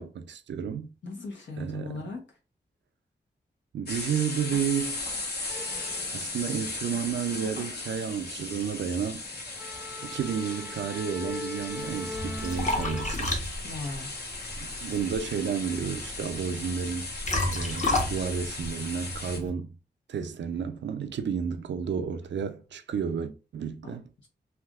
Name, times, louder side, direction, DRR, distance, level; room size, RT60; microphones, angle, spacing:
voice 1, 0.0-0.9 1.6-2.1 3.7-5.0 6.1-9.2 10.0-13.3 14.8-17.1 17.5-19.7 20.1-24.1, right 7 dB, 80° right, 0.4 m, -31 dB
voice 2, 1.0-2.2 13.6-14.1 23.8-24.0, left 3 dB, 85° left, 1.1 m, -37 dB
sound 1, 3.9-19.4, left 3 dB, 65° left, 0.9 m, -37 dB
sound 2, 5.5-13.2, left 2 dB, 10° right, 0.6 m, -42 dB
Liquid, 11.7-19.5, left 2 dB, 40° left, 0.9 m, -33 dB
3.4 x 2.6 x 2.3 m
cardioid pair, 70°, 18 cm